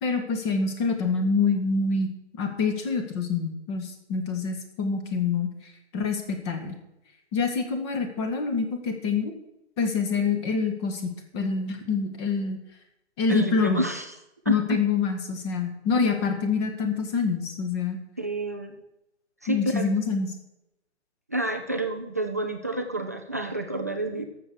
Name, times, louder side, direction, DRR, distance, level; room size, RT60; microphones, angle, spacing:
voice 1, 0.0-2.1 2.4-5.5 5.9-6.7 7.3-9.3 9.8-12.6 13.2-13.8 14.5-18.0 19.5-20.3, left 4 dB, 25° left, 5 dB, 1.6 m, -26 dB
voice 2, 13.3-14.1 14.5-14.6 18.2-18.8 19.4-19.9 21.3-24.2, right 2 dB, 15° right, 3 dB, 0.4 m, -29 dB
12.5 x 7.1 x 6.3 m, 0.88 s
figure-of-eight pair, 140°, 35 cm